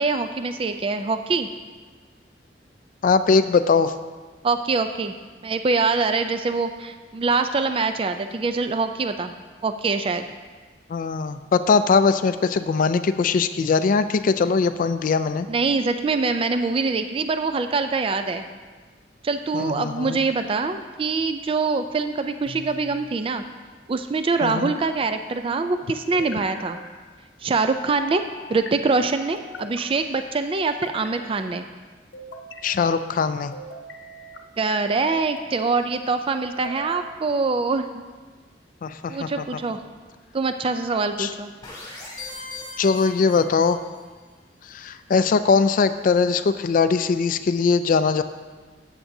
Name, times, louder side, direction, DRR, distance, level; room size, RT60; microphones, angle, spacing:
voice 1, 0.0-1.5 4.4-5.1 5.4-9.3 9.6-10.3 15.5-18.4 19.2-23.4 23.9-26.8 27.4-28.2 28.5-31.7 34.6-38.0 39.1-39.8 40.3-41.5, right 4 dB, 30° right, 8 dB, 0.4 m, -24 dB
voice 2, 3.0-3.9 10.9-15.5 19.5-20.2 24.4-24.7 32.6-33.5 38.8-39.4 41.2-41.3 42.8-43.8 44.7-48.2, left 5 dB, 50° left, 11 dB, 0.3 m, -21 dB
sound 1, 22.5-23.1 24.5-25.3 26.1-26.9 28.0-28.7 29.3-30.0 30.6-31.5 32.1-32.8 33.5-34.4 35.0-35.6 36.3-37.1, left 1 dB, 85° left, 0.8 m, -40 dB
sound 2, 41.6-44.1, left 3 dB, 25° left, 2.8 m, -39 dB
13.5 x 8.0 x 2.7 m, 1.4 s
head